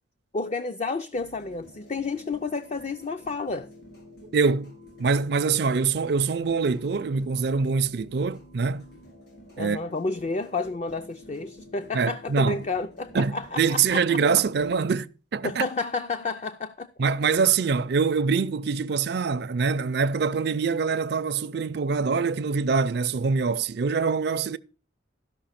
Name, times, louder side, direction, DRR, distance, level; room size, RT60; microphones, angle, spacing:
voice 1, 0.3-3.7 9.6-14.2 15.4-16.9, left 3 dB, 35° left, 0.5 m, -31 dB
sound 1, 1.1-14.7, left 1 dB, 60° left, 3.9 m, -50 dB
voice 2, 4.3-4.7 5.0-8.8 9.6-9.8 11.9-12.6 13.1-15.6 17.0-24.6, right 5 dB, 60° right, 0.4 m, -24 dB
13.0 x 5.6 x 5.7 m
head